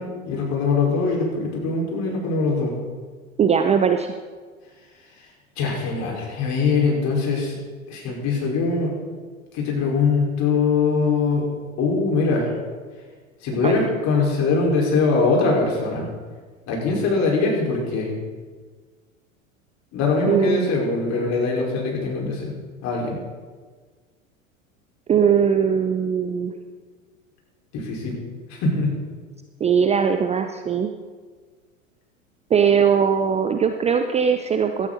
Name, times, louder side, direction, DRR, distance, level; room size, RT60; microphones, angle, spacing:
voice 1, 0.0-2.7 5.6-7.6 7.9-8.9 9.5-11.5 11.8-12.5 13.4-16.1 16.7-18.1 19.9-22.5 22.8-23.2 27.7-28.2 28.5-28.9, left 4 dB, 40° left, -1 dB, 4.9 m, -22 dB
voice 2, 3.4-4.1 13.6-13.7 20.3-20.7 25.1-26.6 29.6-30.9 32.5-34.9, right 7 dB, 15° right, 7 dB, 0.6 m, -20 dB
17.0 x 12.5 x 4.1 m, 1.5 s
figure-of-eight pair, 90°, 42 cm